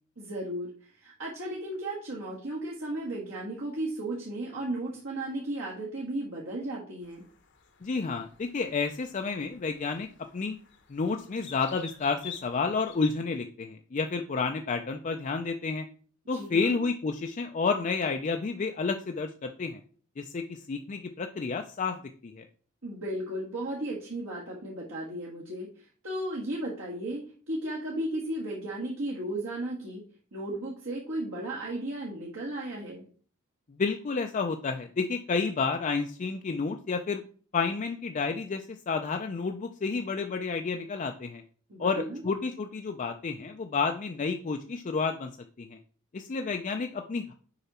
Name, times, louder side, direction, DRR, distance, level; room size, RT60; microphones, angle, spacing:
voice 1, 0.2-7.2 16.3-16.8 22.8-30.0 30.3-33.0 41.7-42.2, right 1 dB, 70° right, -5 dB, 1.7 m, -35 dB
sound 1, 7.0-13.1, left 7 dB, 60° left, 0.9 m, -48 dB
voice 2, 7.8-10.1 10.3-10.6 10.9-15.9 16.3-19.8 20.2-22.0 22.2-22.5 33.7-37.2 37.5-41.4 41.8-45.3 45.6-45.8 46.1-47.3, left 4 dB, 35° left, 5 dB, 0.4 m, -30 dB
6.8 x 4.9 x 4.2 m, 0.43 s
head